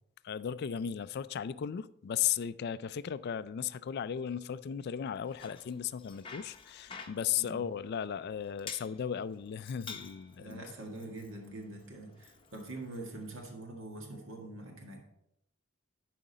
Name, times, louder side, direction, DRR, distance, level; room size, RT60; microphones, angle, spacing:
voice 1, 0.2-10.6, left 8 dB, 55° left, 0.3 m, -36 dB
Bicycle, 5.1-13.5, left 5 dB, 25° left, 0.7 m, -51 dB
voice 2, 10.4-15.0, right 2 dB, 80° right, 1.7 m, -44 dB
11.0 x 5.0 x 4.0 m
head